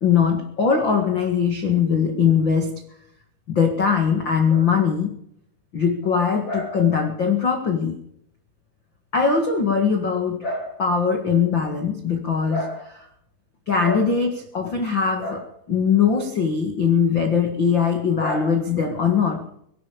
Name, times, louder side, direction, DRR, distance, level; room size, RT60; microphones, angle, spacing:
voice 1, 0.0-2.8 3.5-5.1 5.7-8.0 9.1-13.1 13.7-19.5, left 6 dB, 80° left, 4 dB, 1.0 m, -21 dB
23.5 x 12.0 x 5.1 m, 0.71 s
omnidirectional pair, 5.5 m